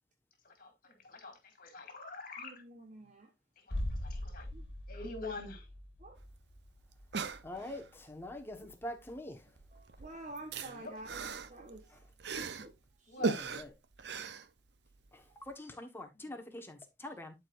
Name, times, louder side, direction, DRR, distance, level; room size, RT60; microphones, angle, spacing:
voice 1, 0.4-2.6 3.7-4.5 4.9-5.7 10.6-10.9 13.1-13.5 16.2-16.4, left 3 dB, 50° left, 2.1 m, -45 dB
voice 2, 2.4-3.3 4.5-4.7 6.0-6.2 9.7-12.1 12.6-13.3 15.2-15.3, right 2 dB, 45° right, 1.0 m, -50 dB
sound 1, 3.7-9.4 9.7-9.8, left 1 dB, 70° left, 1.6 m, -43 dB
sound 2, 6.2-6.3 6.5-6.6 6.9-7.9 9.0-9.3 9.6-12.8 13.2-15.1 15.5-15.6, right 4 dB, 65° right, 0.7 m, -39 dB
voice 3, 7.4-9.5 13.2-13.7 15.1-17.3, left 1 dB, 15° left, 1.2 m, -45 dB
11.0 x 4.8 x 2.5 m
head